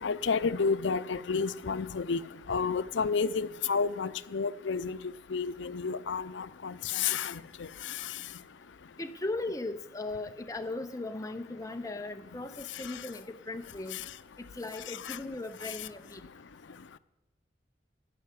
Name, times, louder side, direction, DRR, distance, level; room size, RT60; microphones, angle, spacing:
voice 1, 0.0-2.2 2.5-5.0 5.3-7.4 15.1-15.2, left 5 dB, 80° left, 0.6 m, -30 dB
voice 2, 9.0-14.0 14.6-16.2, left 2 dB, 20° left, 0.6 m, -38 dB
15.0 x 5.7 x 9.6 m
head